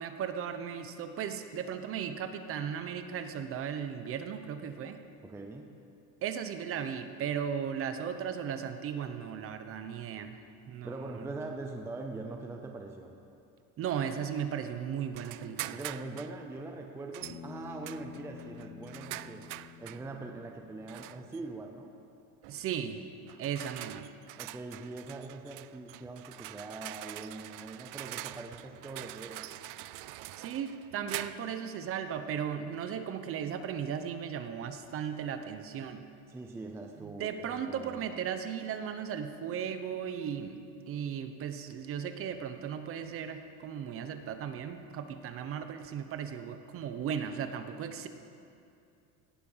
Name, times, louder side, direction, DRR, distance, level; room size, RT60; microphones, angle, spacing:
voice 1, 0.0-5.0 6.2-10.4 10.7-11.3 13.8-15.8 17.3-17.4 22.5-23.0 23.4-24.1 30.4-36.0 37.0-48.1, right 8 dB, 35° right, 8 dB, 0.8 m, -36 dB
voice 2, 5.2-5.7 10.8-13.2 15.7-19.5 19.8-21.9 24.4-29.5 36.3-38.1, right 2 dB, 5° right, 3 dB, 0.5 m, -42 dB
sound 1, 15.1-16.4 17.1-17.4 17.8-20.1 20.9-21.4 22.4-22.7 23.3-31.6, right 17 dB, 55° right, 0.5 m, -44 dB
Bass guitar, 17.2-21.5, left 8 dB, 70° left, 1.5 m, -49 dB
17.5 x 11.5 x 5.6 m, 2.6 s
cardioid pair, 175°, 38 cm